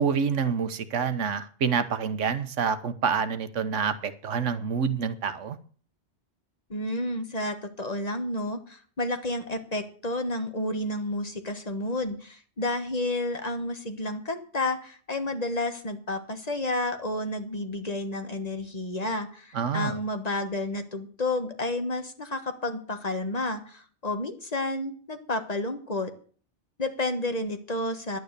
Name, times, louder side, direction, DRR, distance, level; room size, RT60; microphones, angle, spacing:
voice 1, 0.0-5.6 19.5-20.0, right 6 dB, 90° right, 12 dB, 1.3 m, -27 dB
voice 2, 6.7-26.1 26.8-28.2, left 2 dB, 35° left, 7 dB, 1.4 m, -31 dB
11.0 x 9.5 x 6.7 m, 0.44 s
omnidirectional pair, 1.2 m